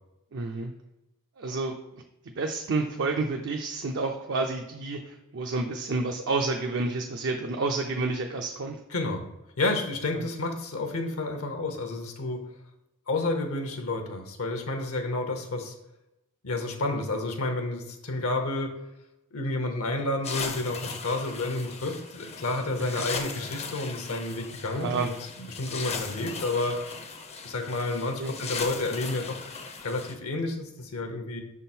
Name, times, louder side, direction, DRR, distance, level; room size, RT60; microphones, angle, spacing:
voice 1, 0.3-0.7 1.4-2.0 2.4-8.8 10.2-10.3 22.8-23.0 24.7-25.1 28.2-28.3, right 3 dB, 55° right, 3 dB, 0.5 m, -30 dB
voice 2, 8.9-9.2 9.6-12.5 13.1-15.7 16.4-18.7 19.3-25.1 25.5-26.8 27.4-29.4 29.8-31.4, left 2 dB, 70° left, 5 dB, 0.8 m, -30 dB
sound 1, 20.2-30.2, left 5 dB, 30° left, 0.5 m, -38 dB
6.1 x 3.6 x 4.3 m, 0.91 s
head